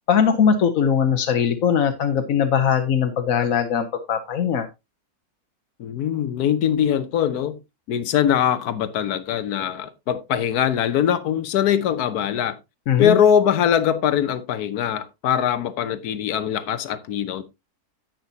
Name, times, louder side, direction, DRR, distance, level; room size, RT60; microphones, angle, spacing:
voice 1, 0.1-4.7 12.9-13.2, left 7 dB, 65° left, 1.2 m, -20 dB
voice 2, 5.8-7.6 7.9-12.6 13.0-17.4, left 9 dB, 90° left, 1.4 m, -22 dB
10.5 x 9.1 x 2.7 m
omnidirectional pair, 1.6 m